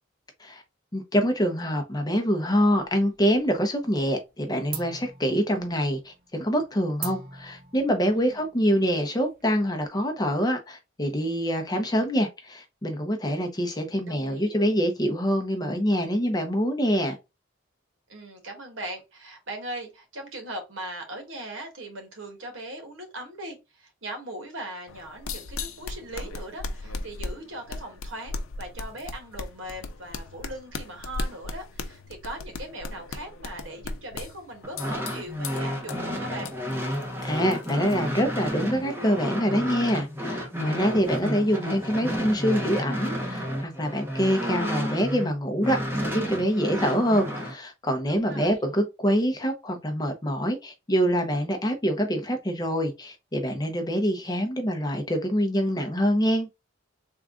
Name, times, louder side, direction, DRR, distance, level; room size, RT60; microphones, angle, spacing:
voice 1, 0.9-17.2 37.2-56.5, equal, 20° left, 0.7 m, -25 dB
sound 1, 2.8-3.6 3.9-4.4 4.7-9.9, right 5 dB, 45° right, 0.7 m, -42 dB
voice 2, 8.1-8.5 14.0-14.5 18.1-36.6 48.1-48.6, right 1 dB, 75° right, 1.4 m, -39 dB
sound 2, 24.9-38.6, left 3 dB, 90° left, 0.5 m, -38 dB
sound 3, 34.6-45.3 45.6-47.5, equal, 10° right, 0.8 m, -31 dB
3.5 x 2.3 x 3.6 m
head